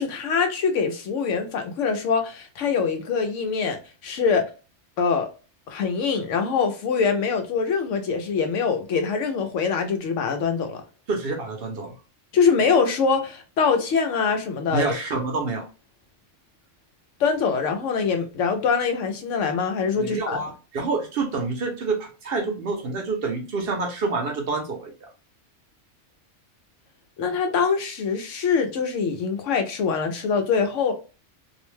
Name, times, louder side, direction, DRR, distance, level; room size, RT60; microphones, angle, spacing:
voice 1, 0.0-3.8 4.0-4.4 5.0-5.3 5.7-10.8 12.3-14.9 17.2-20.4 27.2-30.9, left 5 dB, 90° left, 1.0 m, -23 dB
voice 2, 11.1-12.0 14.7-15.6 19.9-24.9, right 3 dB, 60° right, 0.8 m, -27 dB
2.6 x 2.1 x 3.0 m
omnidirectional pair, 1.2 m